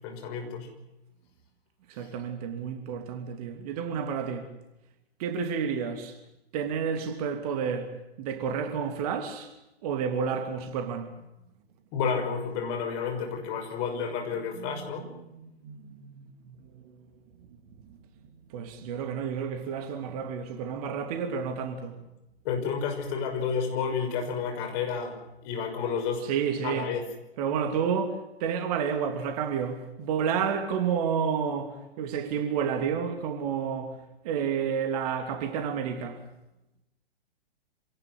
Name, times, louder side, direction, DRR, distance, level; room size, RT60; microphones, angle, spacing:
voice 1, 0.0-0.7 11.9-15.0 22.4-25.2 25.4-26.2 26.6-27.0, left 6 dB, 30° left, 6.0 m, -30 dB
voice 2, 1.9-4.5 5.2-6.2 6.5-9.5 9.8-11.1 14.6-14.9 15.3-17.0 17.9-18.0 18.5-22.0 26.2-26.9 27.4-36.2, right 7 dB, 35° right, 3.0 m, -31 dB
27.5 x 17.5 x 7.9 m
figure-of-eight pair, 120°, 31 cm